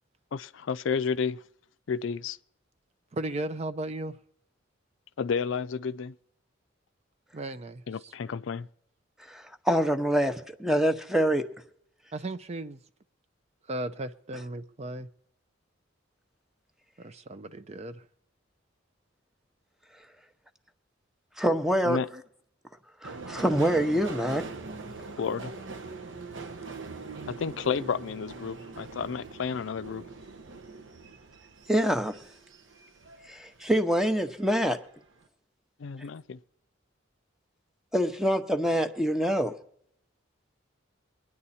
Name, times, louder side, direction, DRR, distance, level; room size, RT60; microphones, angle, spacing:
voice 1, 0.3-1.4 1.9-2.4 5.2-6.1 7.9-8.7 21.8-22.1 25.2-25.5 27.3-30.1 35.8-36.4, left 6 dB, 70° left, 0.4 m, -31 dB
voice 2, 3.1-4.1 7.3-7.8 12.1-12.8 13.7-15.1 17.0-17.9, right 1 dB, 35° right, 0.5 m, -35 dB
voice 3, 9.3-11.4 21.4-22.0 23.0-24.4 31.7-32.1 33.3-34.8 37.9-39.5, equal, ahead, 0.8 m, -25 dB
Subway metro underground, 23.0-33.8 34.1-34.8 35.1-35.2, right 3 dB, 65° right, 0.9 m, -42 dB
23.0 x 9.8 x 4.2 m
head